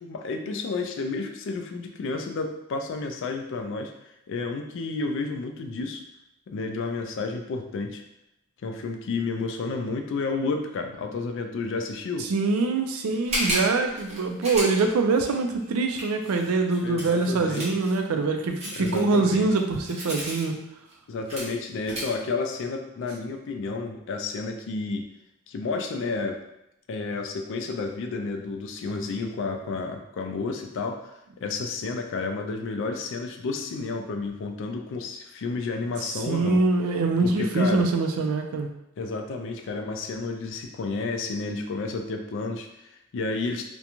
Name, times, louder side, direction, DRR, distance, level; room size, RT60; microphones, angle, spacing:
voice 1, 0.0-3.9 4.3-6.0 6.5-8.0 8.6-12.3 16.8-17.6 18.7-19.5 21.1-25.1 25.5-26.4 26.9-31.1 31.4-36.6 37.2-37.9 39.0-43.7, left 3 dB, 60° left, 5 dB, 0.3 m, -31 dB
voice 2, 12.3-20.6 36.3-38.7, right 3 dB, 75° right, 4 dB, 0.4 m, -24 dB
sound 1, 13.2-18.0 18.6-20.4 20.9-21.0 21.3-21.5 21.9-22.1, equal, 30° right, 0.9 m, -32 dB
2.5 x 2.2 x 2.9 m, 0.85 s
head